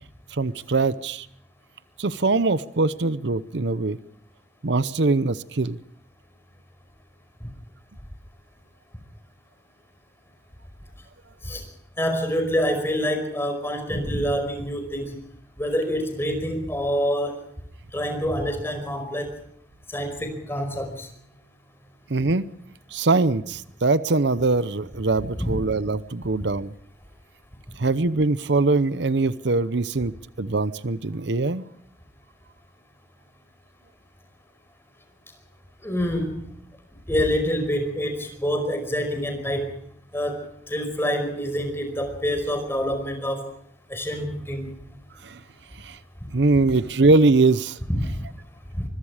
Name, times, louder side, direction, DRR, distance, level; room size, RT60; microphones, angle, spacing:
voice 1, 0.3-1.3 2.0-4.0 4.6-5.8 22.1-22.5 22.9-26.7 27.8-30.1 30.4-31.6 45.2-45.4 45.8-46.0 46.3-47.8, right 3 dB, 75° right, 15 dB, 0.8 m, -22 dB
voice 2, 12.0-15.2 15.6-17.4 17.9-19.3 19.9-21.1 25.4-25.6 35.8-36.4 37.1-39.7 40.1-40.4 40.7-43.5 43.9-44.7 47.9-48.1 48.8-48.9, equal, 15° left, 6 dB, 5.1 m, -26 dB
25.0 x 22.5 x 5.0 m, 0.70 s
head